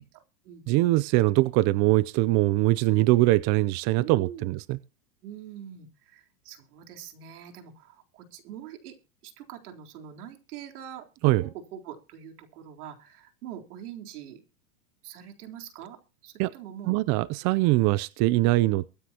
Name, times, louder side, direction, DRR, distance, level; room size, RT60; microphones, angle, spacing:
voice 1, 0.1-0.6 4.0-4.5 5.2-8.9 9.2-11.1 11.4-14.4 15.0-17.0, right 10 dB, 75° right, 4.0 m, -44 dB
voice 2, 0.7-4.8 11.2-11.5 16.4-16.5 16.9-18.8, right 18 dB, 40° right, 0.6 m, -22 dB
23.5 x 9.7 x 3.0 m
supercardioid pair, 135°, 45 cm